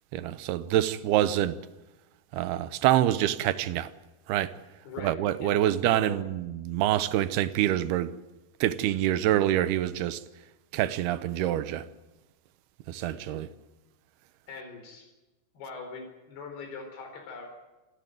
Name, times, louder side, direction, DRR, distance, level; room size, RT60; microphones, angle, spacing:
voice 1, 0.1-1.6 2.3-3.9 4.3-4.5 5.0-8.1 8.6-10.2 10.7-11.9 12.9-13.5, right 13 dB, 75° right, 2.7 m, -26 dB
voice 2, 4.9-6.2 13.0-13.4 14.5-15.1 15.5-17.6, left 4 dB, 65° left, 6.0 m, -42 dB
27.0 x 15.0 x 9.2 m
omnidirectional pair, 5.0 m